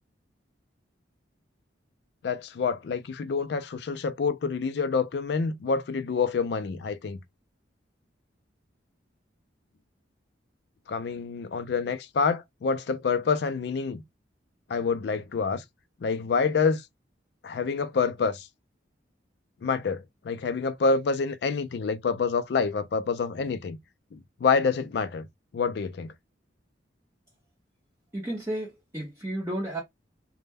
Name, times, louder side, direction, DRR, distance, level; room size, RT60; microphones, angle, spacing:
voice 1, 2.2-7.2 10.9-14.0 14.7-15.6 16.0-16.8 17.4-18.5 19.6-23.8 24.1-25.3 25.5-26.1, left 5 dB, 60° left, 0.3 m, -27 dB
voice 2, 28.1-29.8, right 1 dB, 15° right, 0.6 m, -32 dB
2.1 x 2.1 x 3.3 m
head